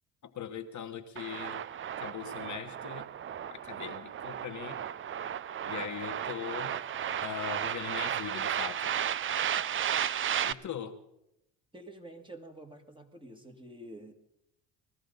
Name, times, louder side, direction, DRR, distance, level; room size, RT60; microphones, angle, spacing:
voice 1, 0.2-1.6 2.0-3.1 3.5-4.8 5.7-6.8 7.2-8.9 10.4-11.0, left 9 dB, 40° left, 4 dB, 1.2 m, -40 dB
sound 1, 1.2-10.5, right 9 dB, 30° right, 0.5 m, -34 dB
voice 2, 11.7-14.1, right 1 dB, 10° right, 4 dB, 2.1 m, -48 dB
20.0 x 14.0 x 4.0 m, 0.84 s
supercardioid pair, 75°, 42 cm